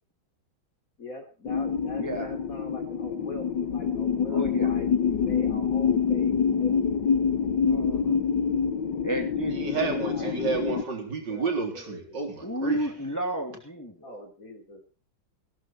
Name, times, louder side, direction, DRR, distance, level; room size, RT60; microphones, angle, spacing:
voice 1, 1.0-6.8 9.9-10.4 11.3-12.2 14.0-14.8, left 1 dB, 45° left, 5 dB, 3.8 m, -42 dB
sound 1, 1.5-10.8, left 6 dB, 65° left, 1.9 m, -26 dB
voice 2, 2.0-2.3 4.3-4.7 7.6-8.2 9.0-10.0 12.4-14.1, equal, 10° left, 3 dB, 2.5 m, -32 dB
voice 3, 9.5-12.9, right 4 dB, 60° right, 3 dB, 4.3 m, -30 dB
16.5 x 13.0 x 4.4 m, 0.36 s
omnidirectional pair, 2.1 m